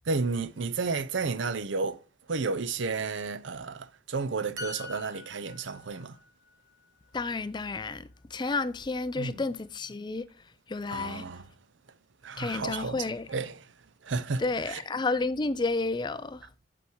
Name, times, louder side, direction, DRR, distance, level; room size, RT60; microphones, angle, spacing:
voice 1, 0.1-2.0 2.3-6.2 9.2-9.4 10.9-11.5 12.2-13.7 14.0-14.8, right 4 dB, 85° right, 0.6 m, -32 dB
sound 1, 4.6-8.2 8.5-8.7, left 3 dB, 15° right, 1.7 m, -46 dB
voice 2, 7.1-10.3 10.7-11.3 12.4-13.3 14.4-16.5, left 3 dB, 25° left, 0.4 m, -31 dB
8.4 x 5.1 x 6.1 m
head